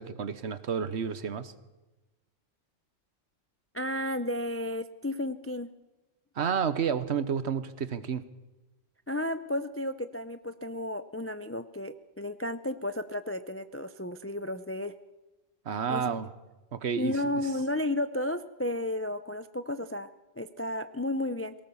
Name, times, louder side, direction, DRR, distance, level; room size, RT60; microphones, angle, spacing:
voice 1, 0.0-1.5 6.4-8.3 15.6-16.3 16.7-17.3, right 7 dB, 60° right, 14 dB, 1.2 m, -30 dB
voice 2, 3.7-5.7 9.1-14.9 15.9-16.1 17.0-20.1 20.4-21.5, left 1 dB, 20° left, 11 dB, 0.3 m, -33 dB
22.5 x 18.0 x 7.1 m, 1.1 s
omnidirectional pair, 1.4 m